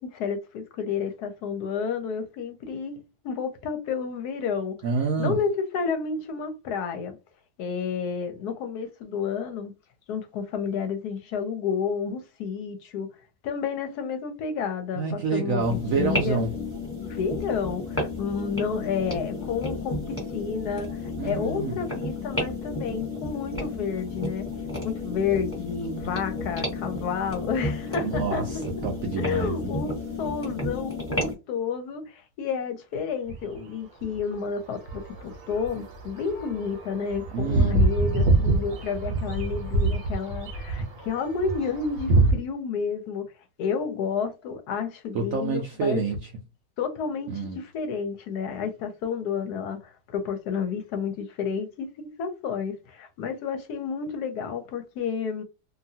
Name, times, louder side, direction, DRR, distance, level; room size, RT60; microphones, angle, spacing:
voice 1, 0.0-4.8 5.2-7.2 7.6-9.7 10.1-13.2 13.4-16.4 17.0-24.5 24.8-28.4 29.2-29.9 30.2-43.3 43.6-46.0 46.8-55.4, left 6 dB, 70° left, 1.0 m, -30 dB
voice 2, 4.8-5.4 15.0-16.5 21.2-21.8 28.0-29.8 37.3-37.8 45.1-46.3 47.3-47.6, right 4 dB, 75° right, 0.7 m, -28 dB
sound 1, 15.6-31.3, left 2 dB, 10° left, 1.1 m, -32 dB
sound 2, 33.3-33.6 34.0-42.3, right 2 dB, 55° right, 1.1 m, -26 dB
2.9 x 2.5 x 2.7 m
omnidirectional pair, 2.0 m